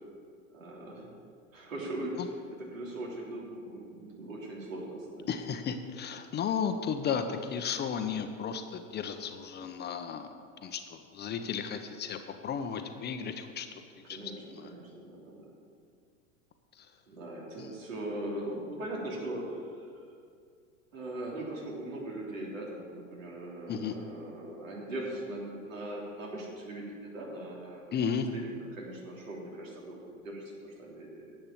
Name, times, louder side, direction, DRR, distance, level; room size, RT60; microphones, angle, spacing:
voice 1, 0.5-1.1 1.5-2.3 2.6-5.3 14.0-15.5 17.1-20.0 20.9-28.0 28.3-31.4, right 1 dB, 80° right, -3 dB, 3.5 m, -40 dB
voice 2, 5.3-10.3 10.6-13.7 14.1-14.2 14.5-14.7 17.6-17.7 23.7-23.9 27.9-28.3, left 7 dB, 25° left, 7 dB, 0.8 m, -34 dB
10.5 x 7.9 x 7.4 m, 2.2 s
hypercardioid pair, 95°, 39 cm